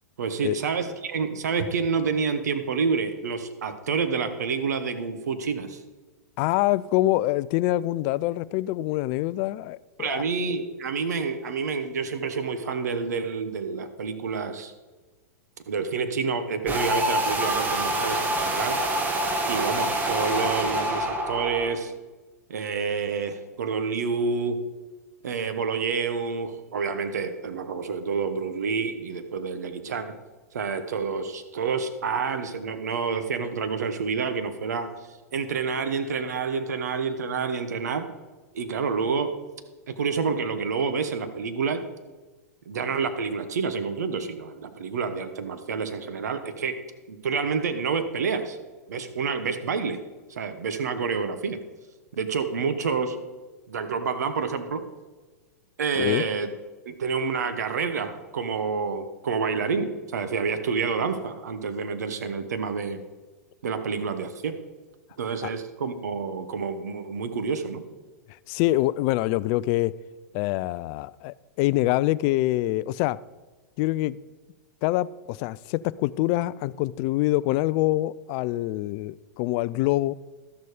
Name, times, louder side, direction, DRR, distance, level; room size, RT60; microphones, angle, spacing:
voice 1, 0.2-5.8 10.0-14.7 15.7-18.8 19.5-21.9 22.5-24.6 25.2-30.1 30.5-34.9 35.3-38.0 38.5-39.3 39.9-41.8 42.7-46.7 47.1-48.6 48.9-50.0 50.3-51.6 52.2-53.2 53.7-54.8 55.8-56.5 56.9-63.0 63.6-64.6 65.2-67.8, right 5 dB, 75° right, 9 dB, 1.1 m, -28 dB
voice 2, 6.4-10.2 56.0-56.2 68.5-69.9 70.3-73.2 73.8-74.2 74.8-80.1, left 17 dB, 45° left, 19 dB, 0.4 m, -25 dB
sound 1, 16.7-21.7, right 1 dB, 20° right, 1.5 m, -26 dB
12.5 x 6.7 x 4.9 m, 1.3 s
hypercardioid pair, 110°, 9 cm